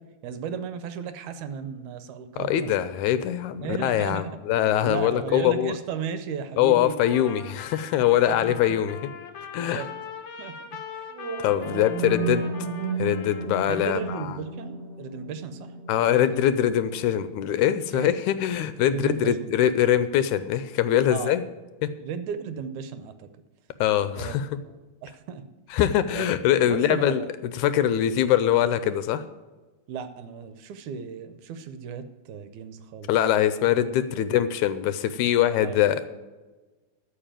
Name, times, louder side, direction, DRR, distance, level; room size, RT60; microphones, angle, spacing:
voice 1, 0.2-2.9 3.6-4.4 4.8-7.1 8.3-8.8 9.6-9.9 10.4-10.6 10.9-11.1 11.5-12.0 13.7-16.4 17.9-18.1 18.9-19.6 21.1-21.4 22.0-23.3 24.1-24.3 24.6-25.4 26.1-26.4 26.7-27.3 29.9-33.1 35.6-35.8, right 6 dB, 75° right, 10 dB, 2.0 m, -35 dB
voice 2, 2.4-5.7 6.6-9.1 9.5-9.8 11.4-12.5 13.0-14.3 15.9-21.4 23.8-24.5 25.7-27.2 27.5-29.2 33.1-36.1, left 11 dB, 80° left, 12 dB, 1.9 m, -23 dB
Trumpet, 7.0-14.4, left 6 dB, 55° left, 1.4 m, -42 dB
sound 1, 11.1-19.1, right 4 dB, 40° right, 2.1 m, -34 dB
13.5 x 4.8 x 9.0 m, 1.2 s
omnidirectional pair, 3.6 m